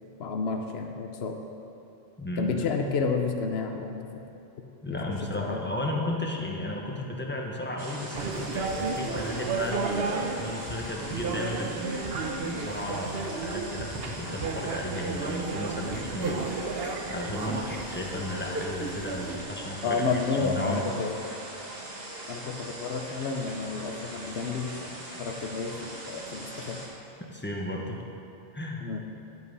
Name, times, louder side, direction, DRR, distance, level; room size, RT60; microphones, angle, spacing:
voice 1, 0.2-1.4 2.4-4.0 4.9-5.0 5.4-5.6 19.8-21.2 22.3-26.8 28.8-29.0, left 4 dB, 80° left, 4 dB, 1.0 m, -30 dB
voice 2, 2.2-2.8 4.8-20.0 20.4-20.9 27.3-28.0 28.5-28.8, left 1 dB, 10° left, -1 dB, 1.2 m, -34 dB
sound 1, 7.8-26.9, right 1 dB, 45° right, 1.5 m, -41 dB
sound 2, 8.1-19.4, right 3 dB, 70° right, 1.1 m, -33 dB
11.0 x 8.4 x 5.5 m, 2.7 s
omnidirectional pair, 1.0 m